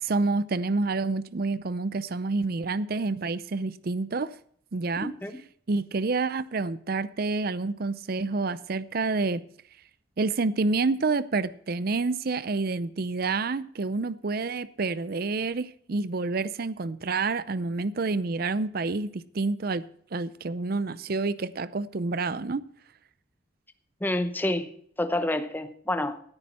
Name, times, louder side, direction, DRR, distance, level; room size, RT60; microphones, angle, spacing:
voice 1, 0.0-4.3 4.7-5.1 5.7-9.4 10.2-19.9 20.1-22.6, right 3 dB, 50° right, 16 dB, 0.5 m, -28 dB
voice 2, 5.0-5.4 24.0-24.7 25.0-26.2, left 1 dB, 10° left, 9 dB, 0.7 m, -28 dB
17.5 x 9.8 x 4.3 m, 0.62 s
head